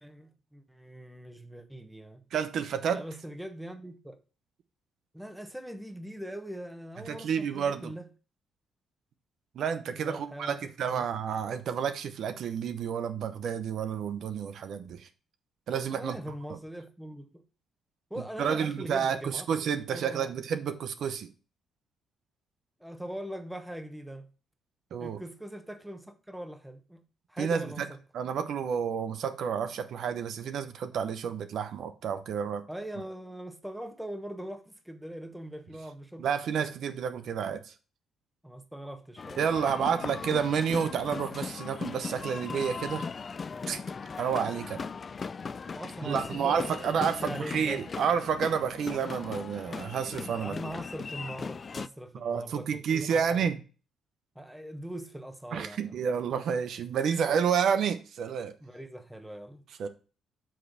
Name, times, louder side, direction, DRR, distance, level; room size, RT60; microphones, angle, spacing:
voice 1, 0.0-2.2 2.9-4.2 5.1-8.1 9.9-10.6 10.9-11.0 15.9-17.4 18.1-19.5 19.9-20.3 22.8-24.3 25.0-27.0 27.3-28.0 32.7-36.3 38.4-39.9 45.7-47.8 50.3-53.4 54.3-56.0 58.6-59.6, right 1 dB, 5° right, 1.1 m, -41 dB
voice 2, 2.3-3.0 7.1-7.9 9.5-15.1 15.7-16.2 16.5-16.6 18.4-21.3 24.9-25.2 27.4-27.9 28.1-32.6 36.2-37.7 39.4-43.1 43.7-43.8 44.2-44.9 46.0-50.5 52.2-53.6 55.5-58.5 59.8-59.9, right 7 dB, 70° right, 0.8 m, -30 dB
sound 1, 39.2-51.9, left 5 dB, 40° left, 0.3 m, -38 dB
7.5 x 3.4 x 6.1 m
cardioid pair, 90°, 0 cm